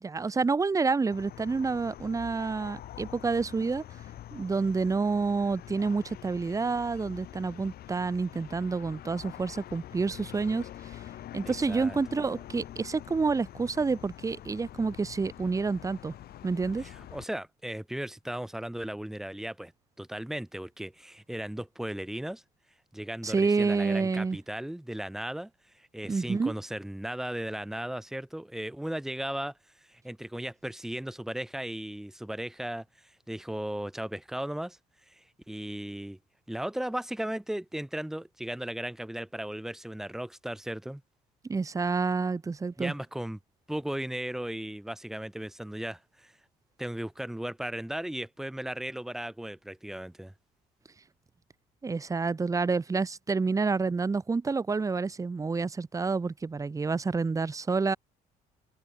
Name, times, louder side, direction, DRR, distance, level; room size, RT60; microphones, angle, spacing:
voice 1, 0.0-3.8 4.3-11.0 11.3-16.1 16.4-16.9 23.2-24.4 26.1-26.5 41.5-42.9 51.8-58.0, right 4 dB, 20° right, 1.0 m, -28 dB
sound 1, 1.1-17.2, left 12 dB, 65° left, 5.8 m, -46 dB
voice 2, 11.4-12.0 16.8-19.7 20.0-22.4 22.9-29.5 29.9-34.8 35.1-36.2 36.5-41.0 42.8-43.4 43.7-46.3 46.8-50.3, right 1 dB, ahead, 0.4 m, -36 dB
cardioid pair, 110°, 17 cm